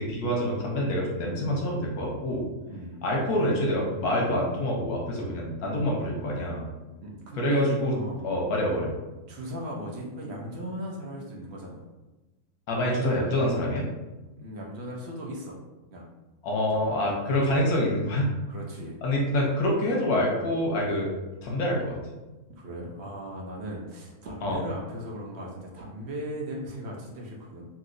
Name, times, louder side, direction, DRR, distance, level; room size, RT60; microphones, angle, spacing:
voice 1, 0.0-2.5 3.0-6.6 7.4-7.9 8.2-8.9 12.7-13.9 16.4-18.3 19.0-21.1 21.4-22.0 24.4-24.6, left 1 dB, 85° left, -2 dB, 1.2 m, -26 dB
voice 2, 2.7-3.0 7.0-8.2 9.3-11.8 14.4-15.6 15.9-16.1 16.7-16.8 18.5-19.0 22.5-27.7, equal, 60° right, -2 dB, 0.8 m, -37 dB
3.0 x 2.8 x 2.5 m, 1.1 s
omnidirectional pair, 1.6 m